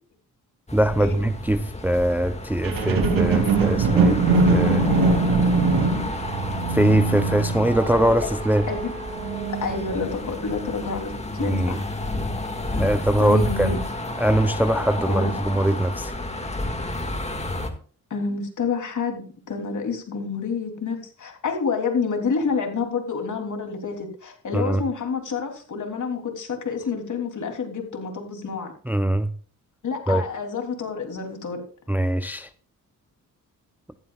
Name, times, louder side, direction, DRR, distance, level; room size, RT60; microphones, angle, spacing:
sound 1, 0.7-17.7, left 2 dB, 20° left, 1.9 m, -31 dB
voice 1, 0.7-4.9 6.7-8.7 11.4-11.8 12.7-13.7 14.2-16.1 24.5-24.8 28.9-29.3 30.1-30.2 31.9-32.5, right 1 dB, 5° right, 0.6 m, -22 dB
sound 2, 2.6-10.1 10.6-10.7, right 3 dB, 75° right, 2.6 m, -22 dB
voice 2, 7.7-8.1 8.7-8.9 9.6-11.1 11.4-11.8 13.2-13.9 15.1-15.3 18.1-28.7 29.8-31.6, left 5 dB, 60° left, 3.2 m, -28 dB
14.5 x 12.5 x 2.4 m
cardioid pair, 85°, 34 cm